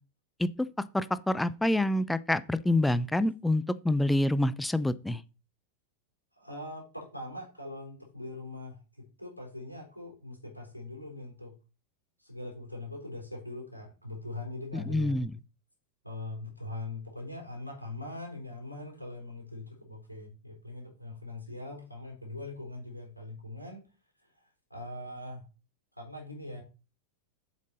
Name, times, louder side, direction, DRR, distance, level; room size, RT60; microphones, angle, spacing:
voice 1, 0.9-5.2 14.7-15.3, left 1 dB, 5° left, 0.6 m, -27 dB
voice 2, 6.4-11.5 12.2-15.3 16.0-23.9 24.2-25.4 26.0-26.6, left 2 dB, 90° right, 3.9 m, -42 dB
7.5 x 7.4 x 4.1 m
figure-of-eight pair, 90°, 0 cm